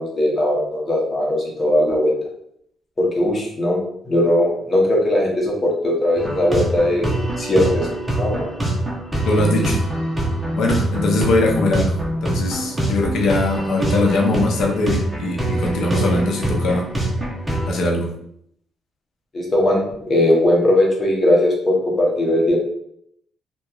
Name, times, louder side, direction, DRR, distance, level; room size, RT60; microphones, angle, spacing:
voice 1, 0.0-2.1 3.0-7.9 8.1-8.5 19.3-22.6, left 1 dB, 35° left, -1 dB, 0.9 m, -19 dB
sound 1, 6.2-17.7, right 1 dB, 10° right, 0.8 m, -24 dB
voice 2, 9.2-9.8 10.6-16.9 17.7-18.1, left 2 dB, 75° left, 0 dB, 0.5 m, -21 dB
2.7 x 2.2 x 2.3 m, 0.70 s
cardioid pair, 90°, 0 cm